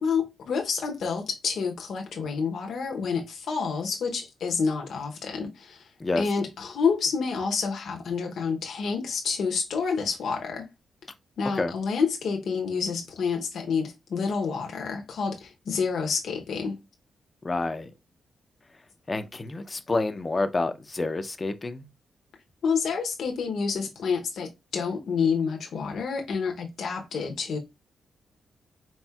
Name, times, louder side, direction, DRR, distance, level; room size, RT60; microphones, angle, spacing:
voice 1, 0.0-5.9 6.2-10.7 11.4-16.8 22.6-27.6, left 5 dB, 65° left, 0.7 m, -28 dB
voice 2, 17.4-17.9 19.1-21.8, left 3 dB, 20° left, 0.4 m, -28 dB
4.2 x 4.1 x 2.3 m
wide cardioid pair, 170°, 0 cm